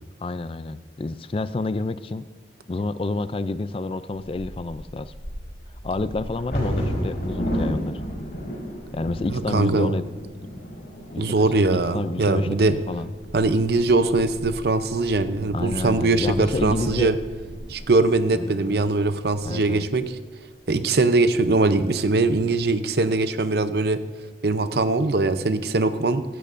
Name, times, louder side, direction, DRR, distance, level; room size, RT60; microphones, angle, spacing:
voice 1, 0.2-2.3 2.7-5.1 5.8-8.0 8.9-10.1 11.1-13.1 15.5-17.1 18.3-18.8 19.4-19.9, left 3 dB, 30° left, 13 dB, 0.3 m, -29 dB
Bird vocalization bird call bird song / Wind / Thunder, 4.1-20.0 20.6-20.7 21.0-21.4 21.9-22.4, equal, 60° left, 4.3 m, -34 dB
voice 2, 9.3-9.9 11.2-12.7 13.3-17.2 17.7-20.1 20.7-24.0 24.4-26.2, right 3 dB, 65° right, 11 dB, 0.6 m, -21 dB
16.0 x 15.0 x 2.6 m, 1.3 s
head